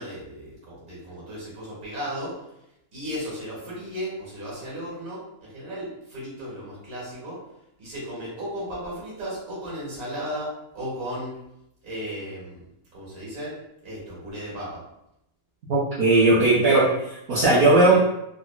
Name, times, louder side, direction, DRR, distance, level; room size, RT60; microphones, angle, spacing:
voice 1, 0.0-2.4 2.9-7.4 7.8-11.4 11.8-12.6 12.9-13.5 13.8-14.8 17.3-18.0, equal, 75° right, -7 dB, 1.8 m, -35 dB
voice 2, 15.7-18.0, right 2 dB, 55° right, -9 dB, 0.7 m, -18 dB
3.7 x 2.0 x 2.2 m, 0.83 s
omnidirectional pair, 1.6 m